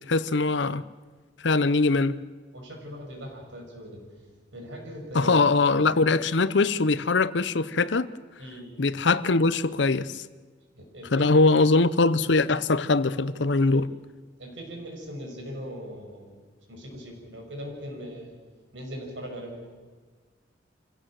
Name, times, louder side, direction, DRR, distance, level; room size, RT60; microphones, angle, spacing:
voice 1, 0.1-0.8 1.4-2.2 5.1-8.1 8.8-10.2 11.1-13.9, left 3 dB, 70° left, 0.8 m, -22 dB
voice 2, 2.5-4.0 4.5-5.4 8.4-8.7 10.8-11.3 14.4-16.3 16.7-18.3 18.7-19.6, equal, 85° right, 6.1 m, -39 dB
26.0 x 16.5 x 7.6 m
head